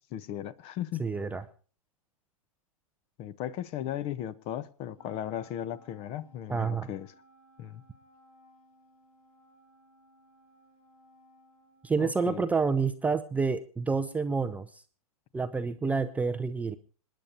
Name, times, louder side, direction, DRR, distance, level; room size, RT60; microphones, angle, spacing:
voice 1, 0.1-1.0 3.2-7.1 7.6-7.8 12.0-12.5, left 11 dB, 30° left, 0.9 m, -36 dB
voice 2, 1.0-1.4 6.5-6.9 11.8-14.7 15.3-16.8, right 4 dB, 10° right, 0.6 m, -28 dB
Wind instrument woodwind instrument, 4.9-12.6, equal, 75° left, 6.0 m, -61 dB
27.0 x 10.0 x 2.7 m
figure-of-eight pair, 110°, 19 cm